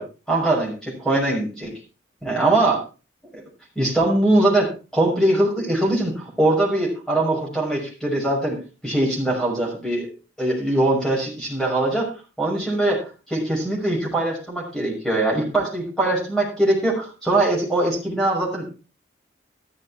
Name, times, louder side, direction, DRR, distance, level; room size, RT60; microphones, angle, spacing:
voice 1, 0.0-1.7 2.2-2.8 3.3-3.4 3.8-8.6 8.8-10.1 10.4-12.1 12.4-13.0 13.3-18.7, right 1 dB, 5° left, -2 dB, 6.2 m, -22 dB
13.5 x 13.0 x 3.6 m, 0.32 s
head